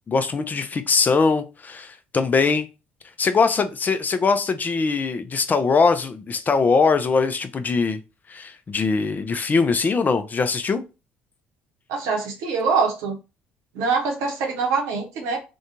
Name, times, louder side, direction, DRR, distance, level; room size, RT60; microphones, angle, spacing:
voice 1, 0.1-2.7 3.2-8.0 8.3-10.8, left 4 dB, 35° left, 0.4 m, -21 dB
voice 2, 11.9-13.2 13.7-15.4, right 5 dB, 65° right, 0.8 m, -24 dB
2.6 x 2.2 x 2.7 m
hypercardioid pair, 50°, 5 cm